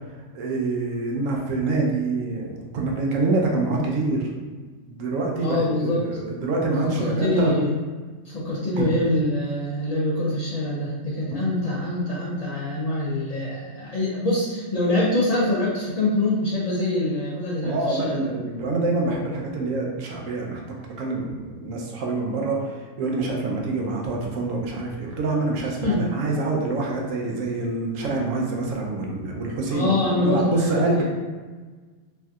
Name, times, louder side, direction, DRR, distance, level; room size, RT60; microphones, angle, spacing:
voice 1, 0.3-4.3 4.9-7.5 8.8-8.9 11.3-11.4 17.6-31.0, right 2 dB, 75° right, -1 dB, 1.0 m, -26 dB
voice 2, 5.4-6.1 7.0-7.7 8.2-18.3 25.8-26.1 29.7-31.0, left 1 dB, 60° left, -7 dB, 0.4 m, -24 dB
3.2 x 2.6 x 2.3 m, 1.4 s
omnidirectional pair, 1.4 m